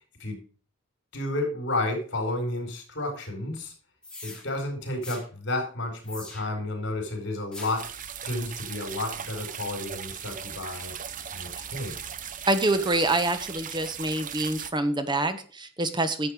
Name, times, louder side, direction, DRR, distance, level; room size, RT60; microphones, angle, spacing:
voice 1, 1.1-3.7 4.2-7.9 8.2-10.9 11.3-12.0, left 2 dB, 65° left, 3 dB, 4.4 m, -31 dB
sound 1, 4.0-4.4 5.0-5.2 6.0-6.7 7.5-7.9, left 2 dB, 5° left, 3.0 m, -42 dB
sound 2, 7.8-14.7, right 8 dB, 45° right, 0.8 m, -38 dB
voice 2, 12.5-16.3, right 2 dB, 25° right, 10 dB, 1.1 m, -26 dB
11.0 x 7.6 x 5.0 m, 0.40 s
head